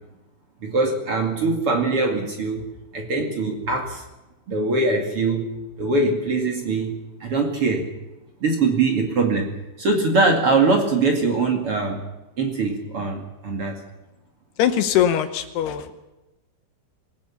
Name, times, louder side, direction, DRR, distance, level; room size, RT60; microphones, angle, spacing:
voice 1, 0.6-2.6 2.9-4.0 4.5-5.5 5.8-7.9 8.4-9.5 9.8-12.0 12.4-13.8, right 3 dB, 45° right, 2 dB, 1.9 m, -22 dB
voice 2, 14.6-16.0, left 10 dB, 75° left, 9 dB, 2.5 m, -21 dB
26.0 x 17.0 x 7.1 m, 1.0 s
omnidirectional pair, 5.8 m